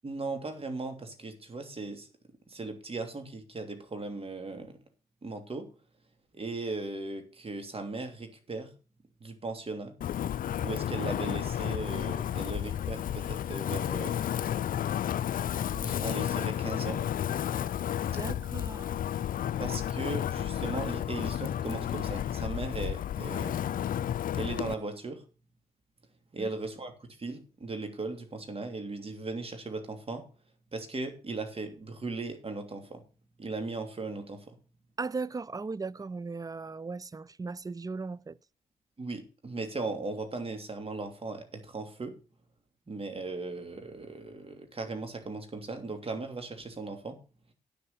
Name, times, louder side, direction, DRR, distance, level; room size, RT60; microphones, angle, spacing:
voice 1, 0.0-2.1 2.5-4.8 5.2-5.7 6.3-8.7 9.2-9.9 10.6-14.2 15.7-17.0 19.6-23.6 24.3-25.2 26.3-30.2 30.7-33.0 33.4-34.5 39.0-42.1 42.9-47.2, right 3 dB, 40° right, 2.9 m, -37 dB
Wind, 10.0-24.7, left 10 dB, 65° left, 0.5 m, -32 dB
voice 2, 18.1-19.0 26.4-26.5 35.0-38.4, right 4 dB, 25° right, 0.5 m, -37 dB
10.0 x 6.7 x 6.8 m
supercardioid pair, 55°, 15 cm